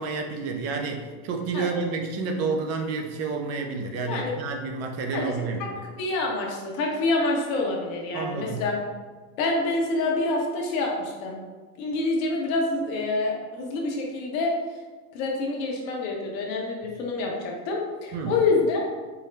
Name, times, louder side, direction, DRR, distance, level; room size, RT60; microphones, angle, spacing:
voice 1, 0.0-5.6 8.1-8.6 18.1-18.4, right 4 dB, 35° right, 4 dB, 0.5 m, -30 dB
voice 2, 6.0-8.8 9.4-11.4 11.8-14.5 15.1-18.8, left 3 dB, 60° left, -1 dB, 1.1 m, -27 dB
4.6 x 2.1 x 3.3 m, 1.4 s
supercardioid pair, 115°, 46 cm